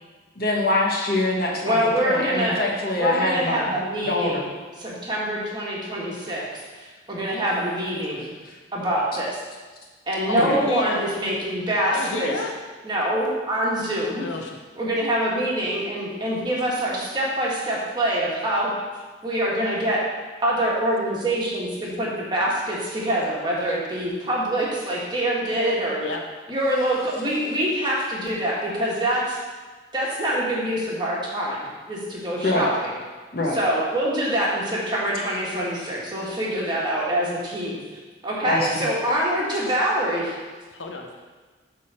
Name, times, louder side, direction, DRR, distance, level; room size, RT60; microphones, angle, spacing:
voice 1, 0.4-3.7 4.0-4.5 10.5-10.6 32.4-32.7 33.3-33.6 38.4-38.8, left 2 dB, 50° left, -2 dB, 1.3 m, -24 dB
voice 2, 1.6-2.6 3.0-4.5 4.8-8.3 8.7-9.4 10.1-12.3 12.8-14.2 14.8-18.7 19.2-20.0 20.4-26.0 26.5-29.4 29.9-32.9 33.5-37.8 38.2-40.4, right 1 dB, 25° right, -5 dB, 1.8 m, -25 dB
voice 3, 10.3-11.0 11.9-12.5 14.2-14.6 23.7-23.8 26.0-26.2 40.7-41.2, left 3 dB, 80° left, 1 dB, 1.0 m, -31 dB
8.4 x 3.9 x 6.4 m, 1.4 s
head